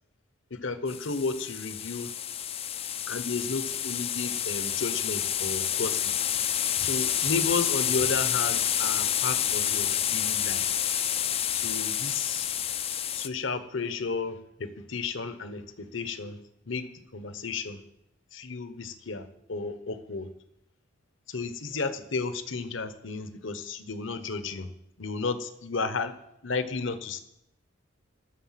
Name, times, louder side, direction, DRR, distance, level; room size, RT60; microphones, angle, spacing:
voice 1, 0.5-2.1 3.1-6.1 6.8-10.6 11.5-12.5 13.1-16.4 16.7-16.9 17.1-17.8 18.3-20.3 21.3-24.7 25.0-26.1 26.4-27.2, left 4 dB, 65° left, 11 dB, 1.0 m, -33 dB
sound 1, 0.9-13.3, left 10 dB, 30° left, 0.4 m, -29 dB
19.0 x 6.8 x 5.8 m, 0.82 s
head